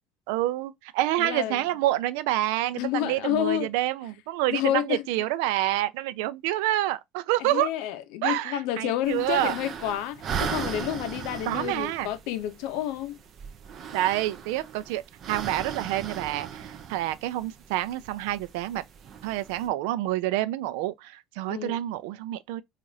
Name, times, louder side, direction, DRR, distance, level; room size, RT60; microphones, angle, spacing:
voice 1, 0.3-7.7 8.2-9.6 11.5-12.1 13.9-15.0 15.3-18.8 19.2-22.6, right 14 dB, 85° right, 0.4 m, -28 dB
voice 2, 1.2-1.6 2.8-3.7 4.5-5.0 7.4-13.2 21.5-21.8, left 12 dB, 65° left, 0.6 m, -29 dB
sound 1, 9.0-19.7, right 7 dB, 30° right, 0.5 m, -38 dB
4.8 x 2.4 x 2.6 m
cardioid pair, 175°, 0 cm